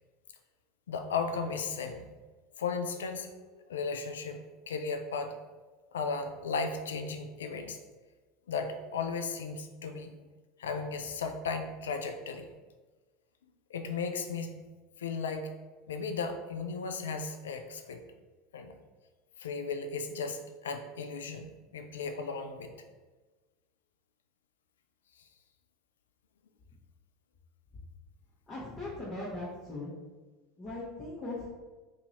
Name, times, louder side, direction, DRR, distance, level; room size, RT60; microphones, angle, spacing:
voice 1, 0.9-2.1 2.6-5.4 5.9-7.8 8.5-10.1 10.6-12.5 13.7-14.6 15.0-15.6 15.9-18.0 18.5-18.8 19.4-22.7, left 4 dB, 85° left, 6 dB, 0.3 m, -35 dB
voice 2, 28.5-29.9 30.6-31.5, left 2 dB, 25° left, -8 dB, 1.1 m, -39 dB
2.8 x 2.7 x 4.1 m, 1.3 s
hypercardioid pair, 85°, 0 cm